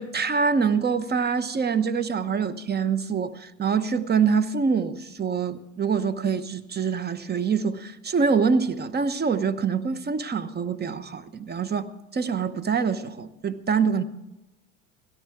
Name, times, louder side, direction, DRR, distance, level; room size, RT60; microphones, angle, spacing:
voice 1, 0.0-14.0, right 5 dB, 25° right, 1.0 m, -25 dB
17.0 x 13.5 x 4.7 m
hypercardioid pair, 75°, 38 cm